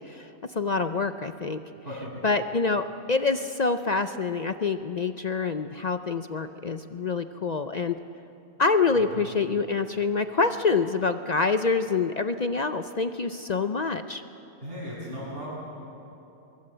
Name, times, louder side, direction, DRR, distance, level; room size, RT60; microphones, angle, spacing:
voice 1, 0.0-1.6 2.2-8.0 8.6-14.2, left 4 dB, 55° left, 9 dB, 0.4 m, -26 dB
voice 2, 1.8-2.2 9.1-9.3 14.6-15.5, equal, 40° right, -11 dB, 6.9 m, -37 dB
24.5 x 22.5 x 7.9 m, 2.9 s
omnidirectional pair, 1.5 m